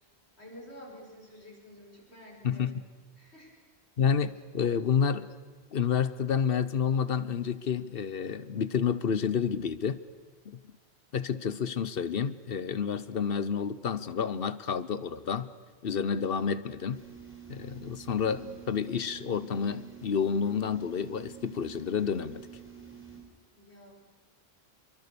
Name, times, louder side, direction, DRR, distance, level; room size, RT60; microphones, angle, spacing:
voice 1, 0.4-2.7 3.2-3.5 23.6-23.9, equal, 85° left, -2 dB, 6.1 m, -49 dB
voice 2, 2.4-2.8 4.0-5.3 5.7-10.0 10.5-10.6 11.1-15.5 15.8-17.0 17.5-22.4, left 7 dB, 65° left, 15 dB, 1.1 m, -29 dB
sound 1, 16.9-23.2, right 7 dB, 10° right, 4.4 m, -48 dB
26.0 x 23.0 x 6.9 m, 1.5 s
omnidirectional pair, 1.1 m